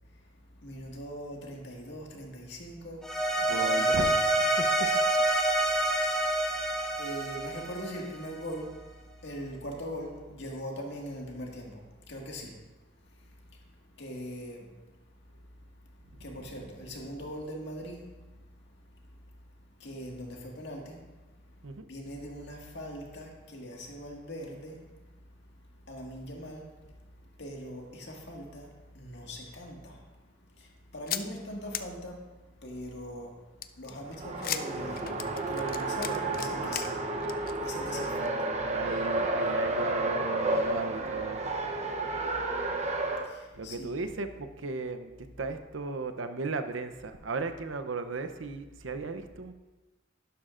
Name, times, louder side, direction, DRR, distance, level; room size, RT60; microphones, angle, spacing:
voice 1, 0.6-3.0 3.5-4.0 7.0-8.7 9.2-11.8 12.1-12.6 14.0-14.7 16.2-18.0 19.8-21.0 21.9-24.8 25.9-26.7 27.4-28.7 29.0-30.0 30.9-32.2 32.6-33.3 33.8-35.0 35.5-37.0 37.6-38.3 43.2-43.9, equal, 65° left, 0 dB, 1.9 m, -41 dB
sound 1, 3.0-8.4, right 1 dB, 5° left, 1.1 m, -27 dB
voice 2, 3.4-4.8 16.2-16.3 21.6-21.8 37.9-41.4 43.6-49.5, right 3 dB, 85° right, 9 dB, 0.7 m, -36 dB
sound 2, 31.1-31.2 31.7-31.8 33.6-36.9 37.2-37.5 37.9-38.0 38.3-38.4, left 11 dB, 50° left, 0.5 m, -36 dB
Race car auto racing, 34.0-43.3, right 2 dB, 35° right, 0.8 m, -31 dB
11.5 x 11.5 x 2.5 m, 1.2 s
head